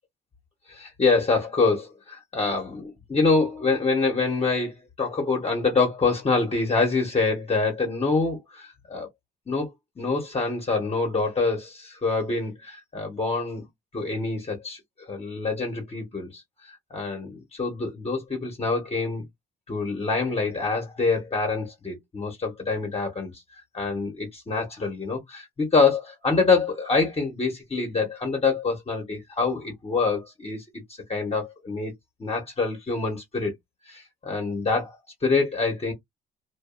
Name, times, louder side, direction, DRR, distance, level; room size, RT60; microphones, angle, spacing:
voice 1, 0.7-9.1 9.5-9.7 10.0-13.6 13.9-19.2 19.7-23.3 23.7-30.6 31.1-31.9 32.2-33.5 33.8-35.9, left 4 dB, 30° left, 1.1 m, -26 dB
2.6 x 2.3 x 2.4 m
cardioid pair, 90°, 20 cm